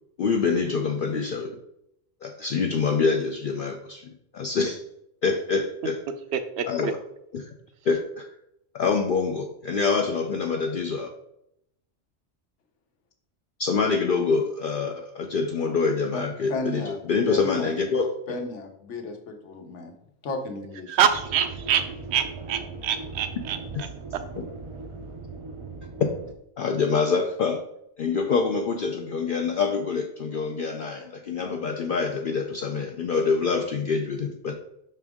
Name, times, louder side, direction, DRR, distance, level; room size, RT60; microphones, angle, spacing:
voice 1, 0.2-1.5 2.2-4.1 4.3-4.8 5.2-6.0 6.7-7.0 7.3-7.5 7.9-8.3 8.7-11.1 13.6-18.1 23.7-23.8 26.0-26.1 26.6-27.6 28.0-34.5, left 5 dB, 60° left, 3 dB, 0.6 m, -25 dB
voice 2, 16.5-17.0 17.3-17.7 18.3-19.9 20.2-21.0, left 2 dB, 80° left, 5 dB, 1.2 m, -33 dB
voice 3, 20.9-23.9, right 9 dB, 70° right, 10 dB, 0.8 m, -25 dB
sound 1, 21.1-26.3, right 3 dB, 40° right, 0.5 m, -39 dB
6.0 x 4.4 x 3.5 m, 0.79 s
omnidirectional pair, 1.2 m